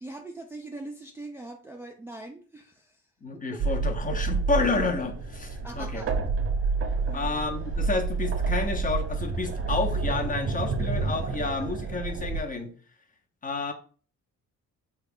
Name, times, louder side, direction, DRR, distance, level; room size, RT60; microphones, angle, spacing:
voice 1, 0.0-3.0 3.5-3.6 5.6-6.1 7.1-7.4, right 2 dB, 10° right, 2 dB, 0.4 m, -42 dB
voice 2, 3.2-6.0 7.1-12.7 13.4-13.7, left 3 dB, 25° left, 5 dB, 0.7 m, -30 dB
sound 1, 3.6-12.4, right 4 dB, 50° right, 0.7 m, -29 dB
3.2 x 2.3 x 3.5 m, 0.40 s
cardioid pair, 90°, 30 cm